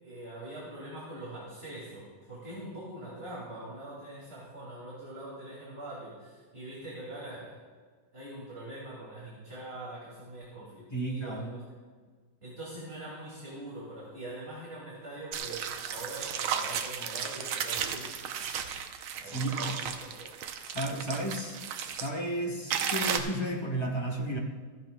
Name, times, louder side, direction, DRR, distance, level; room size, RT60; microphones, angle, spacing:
voice 1, 0.0-7.6 8.1-11.6 12.4-18.2 19.2-20.3, right 1 dB, 30° right, -6 dB, 2.4 m, -43 dB
voice 2, 10.9-11.5 19.2-19.8 20.7-21.6 21.9-24.4, right 1 dB, 25° left, -1 dB, 0.6 m, -33 dB
sound 1, 15.3-22.1 22.7-23.2, right 8 dB, 75° right, 1.6 m, -34 dB
15.5 x 14.5 x 2.2 m, 1.5 s
omnidirectional pair, 2.4 m